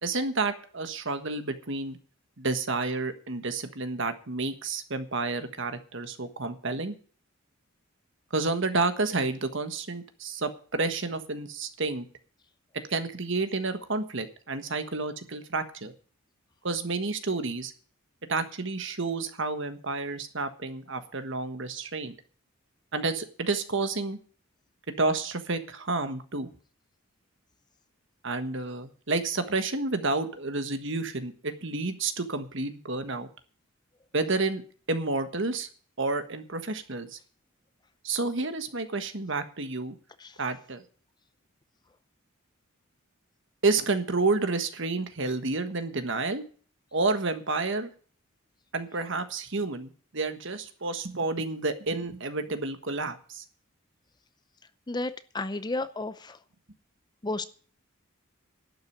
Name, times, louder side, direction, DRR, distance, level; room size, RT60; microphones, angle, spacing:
voice 1, 0.0-2.0 2.4-7.0 8.3-12.1 12.9-15.9 16.6-17.7 18.3-22.1 22.9-24.2 25.0-26.5 28.2-33.3 34.1-34.6 34.9-35.7 36.0-37.2 38.0-39.9 40.4-40.8 43.6-46.4 46.9-47.9 48.7-53.4, right 3 dB, 60° right, 9 dB, 1.5 m, -30 dB
voice 2, 54.9-56.4 57.2-57.5, left 2 dB, 20° left, 12 dB, 0.6 m, -32 dB
11.5 x 6.7 x 9.6 m, 0.42 s
head